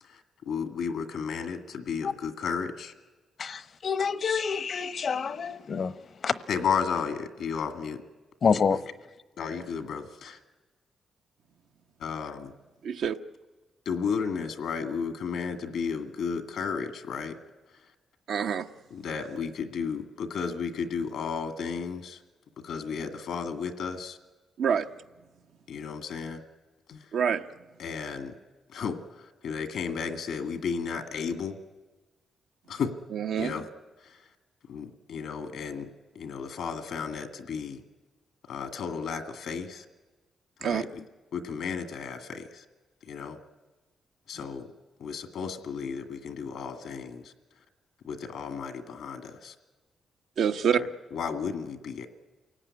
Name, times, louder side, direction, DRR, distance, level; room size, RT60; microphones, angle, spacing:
voice 1, 0.0-2.9 6.5-8.0 9.4-10.4 12.0-12.5 13.9-17.3 18.9-22.2 22.6-24.2 25.7-26.4 26.9-27.1 27.8-28.3 28.7-31.6 32.7-32.9 33.4-33.7 34.0-34.2 34.7-37.8 38.5-39.9 40.6-41.1 41.3-42.7 43.0-43.4 44.3-44.7 45.0-47.3 48.0-49.6 50.8-52.1, left 6 dB, 80° left, 9 dB, 1.8 m, -33 dB
voice 2, 3.4-5.9 6.2-6.4 8.4-8.8, left 6 dB, 60° left, 15 dB, 0.9 m, -27 dB
voice 3, 18.3-18.7 24.6-24.9 27.1-27.4 33.1-33.5 40.6-40.8 50.4-50.8, right 7 dB, 80° right, 6 dB, 0.9 m, -26 dB
28.0 x 17.5 x 9.7 m, 1.2 s
cardioid pair, 65°, 0 cm